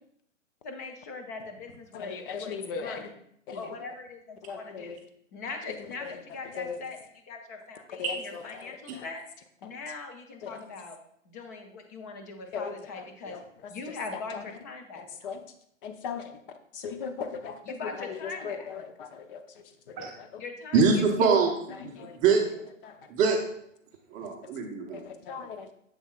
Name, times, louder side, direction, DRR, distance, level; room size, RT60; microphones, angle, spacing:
voice 1, 0.6-3.1 3.5-4.9 5.3-9.2 9.6-11.0 11.3-13.4 13.7-15.3 17.6-18.7 20.4-21.3, left 3 dB, 15° left, 4 dB, 0.3 m, -41 dB
voice 2, 1.9-3.0 3.5-3.7 4.4-5.0 6.0-6.1 6.6-6.8 8.0-9.0 10.4-10.5 12.5-13.4 14.3-14.4 15.0-15.4 15.8-16.4 16.7-19.4 19.9-20.4 21.8-22.2 22.8-23.0 24.9-25.7, left 6 dB, 45° left, 7 dB, 0.9 m, -38 dB
voice 3, 20.7-21.5 21.8-21.9 22.2-22.4 23.1-23.4 24.1-25.0, right 5 dB, 20° right, 1 dB, 0.7 m, -23 dB
7.3 x 7.0 x 2.3 m, 0.72 s
hypercardioid pair, 120°, 39 cm